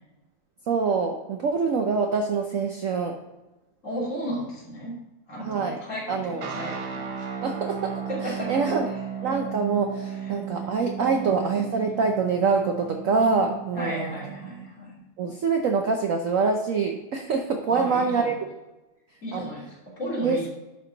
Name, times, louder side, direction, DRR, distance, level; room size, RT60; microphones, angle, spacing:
voice 1, 0.7-3.1 5.4-5.8 6.1-6.4 7.4-8.9 9.2-14.1 15.2-18.3 19.3-19.4 20.2-20.5, right 4 dB, 60° right, 3 dB, 0.9 m, -25 dB
voice 2, 3.8-5.0 5.3-7.4 8.1-8.6 10.2-10.3 11.0-11.4 13.7-15.0 17.6-18.3 19.2-20.5, equal, 40° left, -6 dB, 3.3 m, -34 dB
sound 1, 6.4-14.7, right 7 dB, 85° right, 1.7 m, -35 dB
11.5 x 4.5 x 3.9 m, 1.0 s
omnidirectional pair, 2.0 m